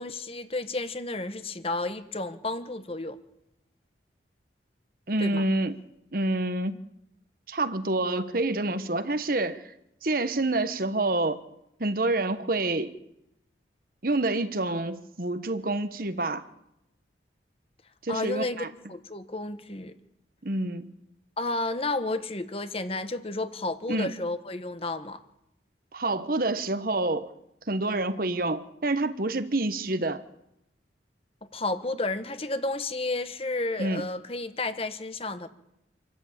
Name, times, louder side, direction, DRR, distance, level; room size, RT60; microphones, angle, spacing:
voice 1, 0.0-3.2 5.2-5.4 18.1-20.0 21.4-25.2 31.5-35.5, left 2 dB, 30° left, 1.2 m, -32 dB
voice 2, 5.1-5.8 6.1-6.8 7.5-9.7 10.0-11.4 11.8-12.9 14.0-16.5 18.0-18.7 20.4-20.9 23.9-24.1 25.9-27.3 27.7-30.2 33.8-34.0, right 2 dB, 50° right, 1.2 m, -27 dB
26.5 x 13.5 x 8.8 m
head